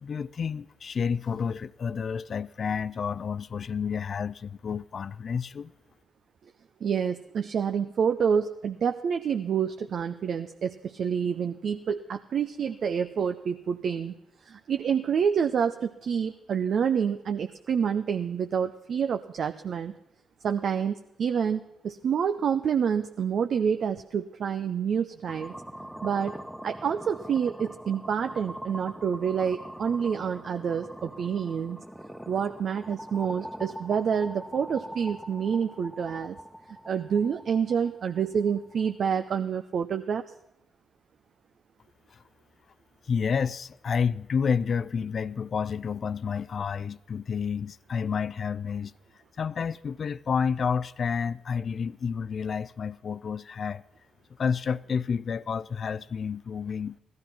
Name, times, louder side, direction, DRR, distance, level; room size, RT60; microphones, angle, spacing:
voice 1, 0.0-5.7 42.1-42.2 43.1-48.9 49.4-53.8 54.4-57.0, left 6 dB, 50° left, 0.5 m, -30 dB
voice 2, 6.8-14.1 14.4-19.9 20.4-25.5 26.0-26.4 26.6-31.8 32.3-36.4 36.9-40.2, right 7 dB, 55° right, 0.6 m, -28 dB
sound 1, 25.3-39.3, equal, 5° right, 1.2 m, -43 dB
16.5 x 12.5 x 5.8 m
hypercardioid pair, 40°, 0 cm